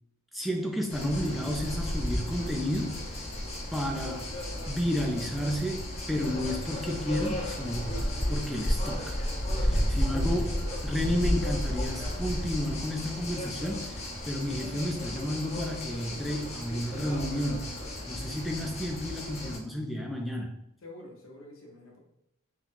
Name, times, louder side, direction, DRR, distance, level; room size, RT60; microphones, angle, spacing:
voice 1, 0.3-3.1 3.7-4.3 4.7-8.0 8.3-9.2 9.6-17.7 18.1-20.5, equal, ahead, 1 dB, 0.4 m, -32 dB
sound 1, 0.9-19.6, left 1 dB, 30° left, 0.7 m, -33 dB
voice 2, 20.8-22.0, left 1 dB, 70° left, 0 dB, 1.0 m, -48 dB
3.8 x 2.3 x 4.4 m, 0.81 s
head